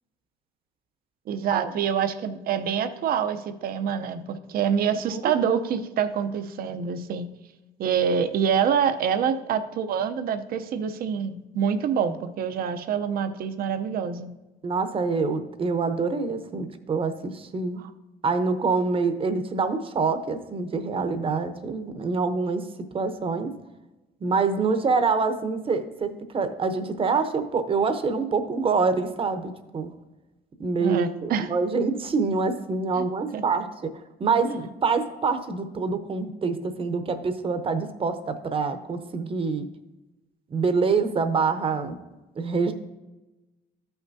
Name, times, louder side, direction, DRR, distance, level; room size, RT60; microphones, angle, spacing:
voice 1, 1.3-7.3 7.8-14.3 30.8-31.5 33.0-33.1 33.3-33.4, right 7 dB, 60° right, 9 dB, 0.7 m, -26 dB
voice 2, 14.6-17.8 18.2-22.6 22.9-23.5 24.2-29.9 30.6-33.7 34.2-39.7 40.5-42.0 42.4-42.7, right 4 dB, 35° right, 9 dB, 0.8 m, -26 dB
13.0 x 5.8 x 2.7 m, 1.1 s
cardioid pair, 110°, 17 cm